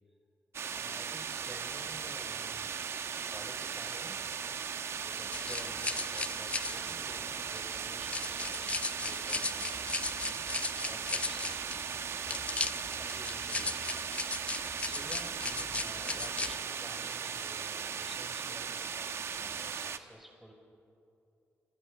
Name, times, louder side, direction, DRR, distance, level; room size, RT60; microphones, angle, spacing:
sound 1, 0.5-20.0, right 7 dB, 65° right, 1.2 m, -38 dB
voice 1, 0.7-2.9 3.3-4.3 5.0-9.8 10.2-14.2 14.8-20.5, equal, 5° right, 2 dB, 5.5 m, -52 dB
sound 2, 5.3-16.6, left 3 dB, 25° left, 0.8 m, -37 dB
29.0 x 28.0 x 6.5 m, 2.6 s
cardioid pair, 105°, 5 cm